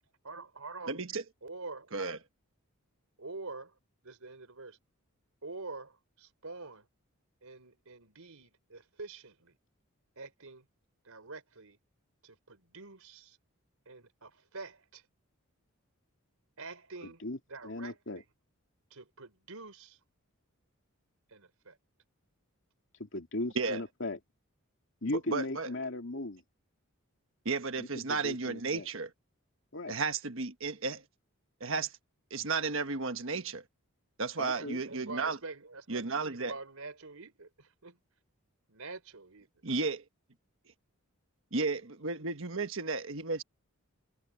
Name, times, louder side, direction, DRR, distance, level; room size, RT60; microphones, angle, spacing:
voice 1, 0.2-1.0 1.4-1.9 3.2-3.7 4.0-4.8 5.4-6.9 7.4-9.6 10.2-10.6 11.0-11.8 12.2-13.4 13.9-15.0 16.6-17.2 17.5-18.2 18.9-20.0 21.3-21.8 34.5-38.0 38.7-39.5, right 3 dB, 75° right, 3.9 m, -46 dB
voice 2, 0.9-1.2 1.9-2.2 23.5-23.8 25.3-25.7 27.4-29.1 29.9-31.0 31.6-32.0 32.3-33.6 34.2-35.4 35.9-36.5 39.6-40.0 41.5-43.4, right 4 dB, 60° right, 1.4 m, -33 dB
voice 3, 17.0-17.4 17.6-18.2 23.0-24.2 25.0-26.4 27.8-28.9 29.7-29.9 34.4-34.8, left 2 dB, 55° left, 2.7 m, -37 dB
head